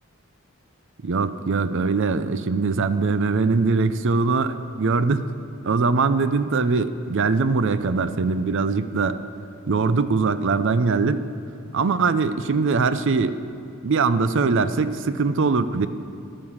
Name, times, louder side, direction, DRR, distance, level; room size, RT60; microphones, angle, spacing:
voice 1, 1.0-5.3 5.6-9.2 9.7-11.2 11.7-13.4 13.8-15.9, right 4 dB, 60° right, 12 dB, 0.5 m, -22 dB
12.5 x 11.5 x 7.2 m, 2.5 s
head